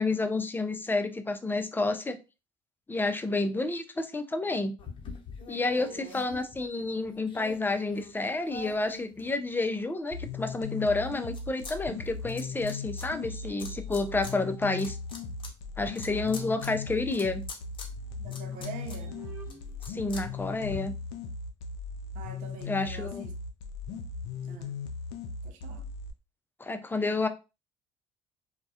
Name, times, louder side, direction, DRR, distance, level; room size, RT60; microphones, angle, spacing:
voice 1, 0.0-2.2 2.9-4.8 5.5-15.0 15.8-17.4 19.9-20.9 22.7-23.3 26.6-27.3, left 3 dB, 15° left, 0.4 m, -30 dB
sound 1, 4.8-9.9 10.4-11.8 12.0-13.1 13.6-14.3 14.7-20.8, left 4 dB, 35° left, 0.8 m, -46 dB
voice 2, 5.7-6.3 18.2-19.2 22.1-23.3 24.5-24.8 25.4-25.9, right 5 dB, 65° right, 0.5 m, -45 dB
sound 2, 10.1-26.1, left 5 dB, 80° left, 0.5 m, -38 dB
sound 3, 12.9-15.2 15.7-20.9, right 2 dB, 15° right, 0.9 m, -55 dB
2.2 x 2.1 x 2.7 m
hypercardioid pair, 60°, 15 cm